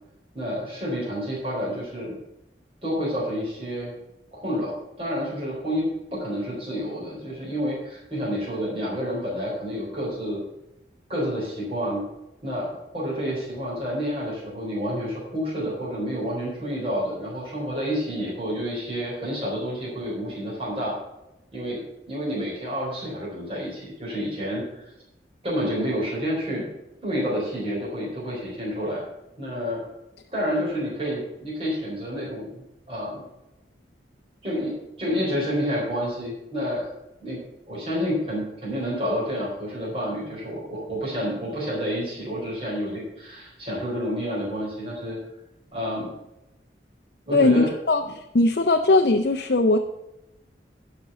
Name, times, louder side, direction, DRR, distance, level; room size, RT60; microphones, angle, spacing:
voice 1, 0.3-2.1 2.8-3.9 4.3-10.4 11.1-12.0 12.4-21.0 21.5-21.8 22.1-24.9 25.4-26.7 27.0-29.0 29.4-29.8 30.3-32.6 32.9-33.2 34.4-36.9 37.2-37.4 37.7-45.2 45.7-46.1 47.3-47.7, equal, 30° right, -6 dB, 4.1 m, -29 dB
voice 2, 47.3-49.8, left 2 dB, 65° left, 5 dB, 0.6 m, -20 dB
12.0 x 5.2 x 6.8 m, 0.89 s
head